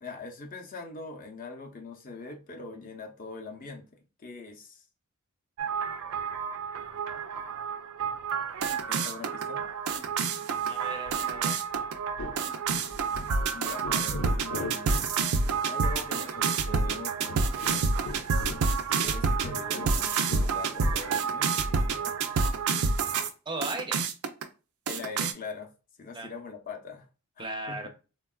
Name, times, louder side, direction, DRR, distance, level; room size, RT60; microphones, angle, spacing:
voice 1, 0.0-3.9 4.2-4.8 8.9-9.6 13.5-15.1 15.7-18.0 18.9-22.5 24.9-25.7 26.0-27.1 27.4-27.9, left 3 dB, 40° left, 0.5 m, -42 dB
sound 1, 5.6-23.3 23.6-24.4 24.9-25.3, right 5 dB, 80° right, 0.4 m, -29 dB
voice 2, 10.7-11.6 23.5-24.0 26.1-26.3 27.4-27.9, right 2 dB, 20° right, 0.4 m, -36 dB
sound 2, 11.0-11.4 11.7-11.8 12.2-12.4 12.7-13.5 13.8-15.1 15.4-15.5 15.9-16.0 16.4-16.5 16.8-19.2 19.4-21.0, left 2 dB, 85° left, 0.7 m, -38 dB
3.5 x 2.2 x 2.3 m
head